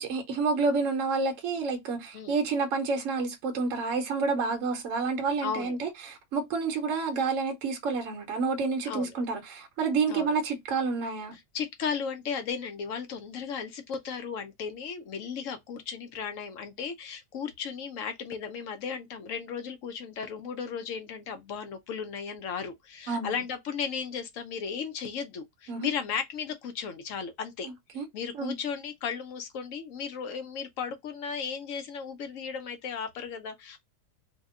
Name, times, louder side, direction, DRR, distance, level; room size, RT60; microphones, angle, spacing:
voice 1, 0.0-11.3 23.1-23.4 25.7-25.9 27.6-28.1 28.4-28.6, right 4 dB, 65° right, 0.9 m, -29 dB
voice 2, 5.4-5.8 8.8-9.1 10.1-10.4 11.3-27.7 28.1-33.8, left 6 dB, 65° left, 0.9 m, -35 dB
2.7 x 2.1 x 3.5 m
omnidirectional pair, 1.7 m